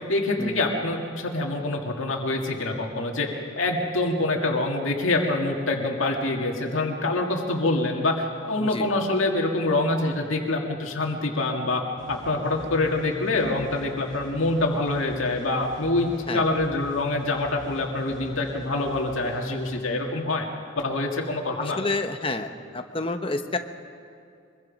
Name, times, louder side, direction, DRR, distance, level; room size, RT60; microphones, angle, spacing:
voice 1, 0.1-11.8 12.1-20.5 20.8-21.8, left 2 dB, 90° left, 1 dB, 2.1 m, -25 dB
sound 1, 12.0-19.8, left 2 dB, 5° left, 6.0 m, -40 dB
voice 2, 21.8-22.5 22.7-23.6, left 2 dB, 25° left, 7 dB, 1.0 m, -28 dB
24.0 x 23.0 x 5.3 m, 2.4 s
head